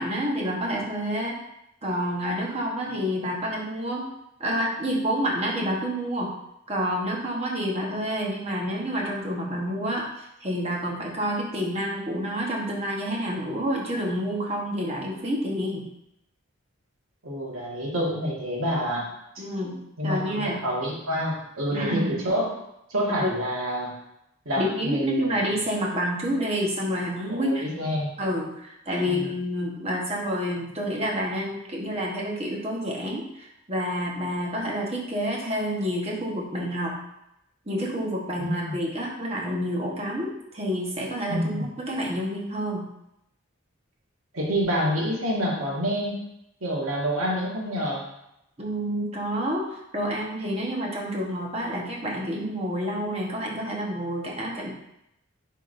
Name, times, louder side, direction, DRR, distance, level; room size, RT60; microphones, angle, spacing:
voice 1, 0.0-1.4 1.8-4.1 4.4-6.3 6.7-15.9 19.4-19.8 20.0-20.6 21.7-22.3 23.2-23.3 24.6-27.8 28.2-36.9 37.7-42.8 48.6-54.7, equal, 30° right, -2 dB, 1.1 m, -28 dB
voice 2, 17.2-19.1 20.0-22.6 22.9-23.9 24.4-25.4 27.3-28.1 29.0-29.3 38.4-38.8 41.3-41.7 44.3-46.2 46.6-48.0, equal, 80° right, -3 dB, 1.6 m, -27 dB
9.7 x 3.7 x 2.6 m, 0.82 s
head